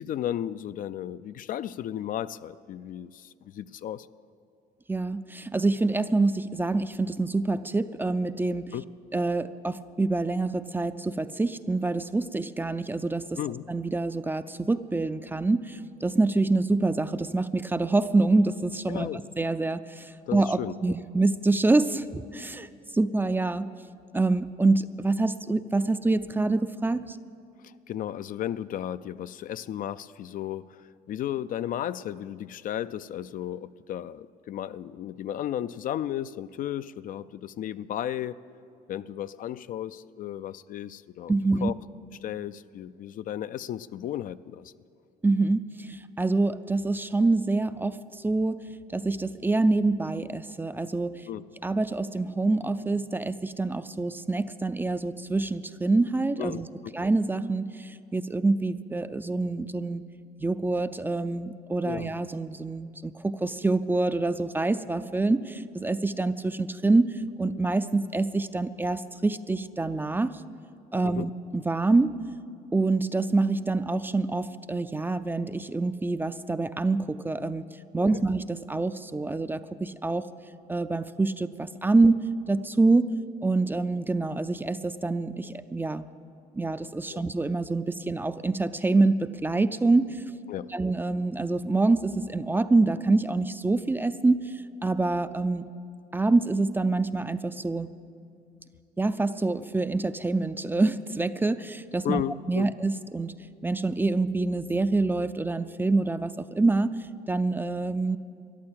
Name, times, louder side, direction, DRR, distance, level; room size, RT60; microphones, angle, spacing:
voice 1, 0.0-4.1 8.7-8.8 13.4-13.7 18.9-19.2 20.3-20.7 27.6-38.4 38.9-41.3 41.6-41.7 42.2-44.7 51.3-51.4 56.4-56.6 61.8-62.1 71.0-71.3 78.1-78.2 87.1-87.2 90.5-90.7 102.0-102.7, left 11 dB, 55° left, 14 dB, 0.4 m, -34 dB
voice 2, 4.9-8.7 9.1-13.4 13.7-22.7 22.9-23.7 24.1-27.2 41.3-41.7 45.2-48.6 48.9-51.2 51.6-56.7 56.9-60.0 60.4-70.4 70.9-72.2 72.7-77.6 77.9-80.3 80.7-82.2 82.5-86.1 86.5-90.2 90.7-94.5 94.8-95.7 96.1-97.9 99.0-102.2 102.5-103.3 103.6-107.0 107.3-108.2, right 3 dB, 10° right, 12 dB, 0.4 m, -26 dB
13.5 x 11.5 x 8.7 m, 2.4 s
cardioid pair, 110°, 17 cm